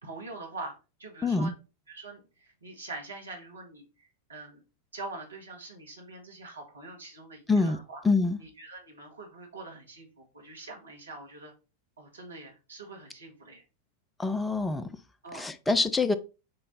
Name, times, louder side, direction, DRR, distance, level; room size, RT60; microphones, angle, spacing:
voice 1, 0.0-1.5 1.9-4.6 4.9-8.0 8.4-11.5 12.0-13.6 15.2-15.5, right 3 dB, 75° right, 2.0 m, -44 dB
voice 2, 1.2-1.5 7.5-7.8 8.0-8.4 14.2-14.9 15.3-16.1, left 3 dB, 10° left, 0.6 m, -25 dB
7.6 x 3.2 x 4.2 m
figure-of-eight pair, 90°, 0 cm